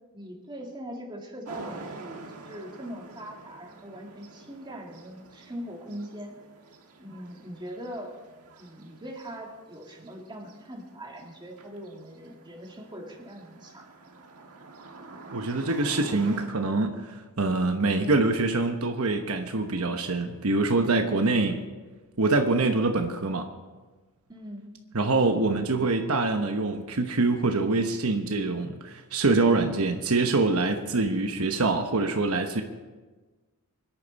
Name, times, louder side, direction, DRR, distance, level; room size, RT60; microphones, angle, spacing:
voice 1, 0.1-6.4 7.0-8.1 8.6-13.9 24.3-24.7 25.2-25.4, equal, 20° right, 0 dB, 2.4 m, -41 dB
sound 1, 1.4-16.5, right 3 dB, 90° right, 1.6 m, -47 dB
voice 2, 15.3-21.6 22.2-23.5 24.9-32.6, right 3 dB, 70° right, 5 dB, 1.1 m, -25 dB
23.5 x 10.5 x 4.2 m, 1.3 s
head